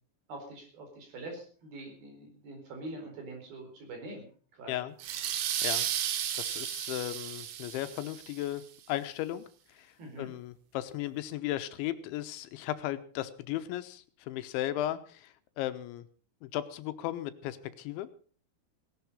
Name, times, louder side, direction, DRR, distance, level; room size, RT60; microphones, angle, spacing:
voice 1, 0.3-4.9 10.0-10.3, right 2 dB, 55° right, 3 dB, 6.1 m, -44 dB
sound 1, 5.0-8.4, right 10 dB, 70° right, 3.1 m, -33 dB
voice 2, 6.3-8.6 8.9-9.4 9.8-9.9 10.2-16.0 16.4-18.1, left 13 dB, 90° left, 11 dB, 3.3 m, -36 dB
18.0 x 12.0 x 5.4 m, 0.42 s
omnidirectional pair, 5.3 m